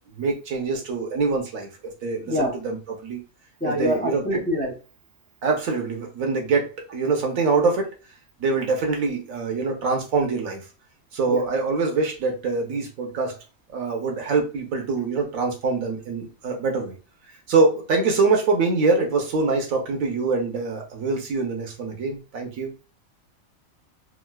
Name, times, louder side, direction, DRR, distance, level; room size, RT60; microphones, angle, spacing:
voice 1, 0.2-1.7 2.0-3.2 3.6-4.4 5.4-7.9 8.4-10.6 11.1-13.4 13.7-17.0 17.5-22.7, right 4 dB, 75° right, 2 dB, 1.2 m, -24 dB
voice 2, 3.6-4.7 11.3-11.4, equal, 15° left, -2 dB, 0.3 m, -25 dB
3.7 x 2.4 x 2.2 m, 0.33 s
omnidirectional pair, 1.4 m